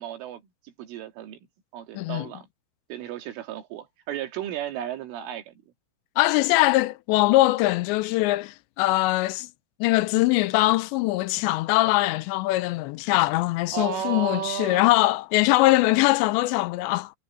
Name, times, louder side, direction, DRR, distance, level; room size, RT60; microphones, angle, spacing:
voice 1, 0.0-1.4 1.7-2.5 2.9-5.5 13.7-15.0, right 10 dB, 85° right, 4.9 m, -34 dB
voice 2, 1.9-2.3 6.2-9.5 9.8-17.1, left 19 dB, 80° left, 2.8 m, -22 dB
omnidirectional pair, 5.5 m